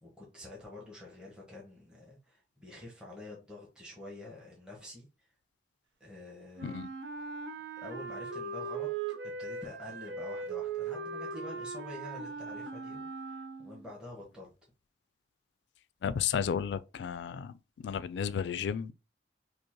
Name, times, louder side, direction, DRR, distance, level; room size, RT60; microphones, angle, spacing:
voice 1, 0.0-5.1 6.0-6.8 7.8-8.9 9.4-14.5, left 2 dB, 5° right, 1.0 m, -47 dB
Wind instrument woodwind instrument, 6.6-13.9, right 4 dB, 90° right, 0.6 m, -39 dB
voice 2, 16.0-17.5 17.8-18.9, left 7 dB, 80° left, 0.3 m, -33 dB
5.2 x 2.1 x 2.9 m
head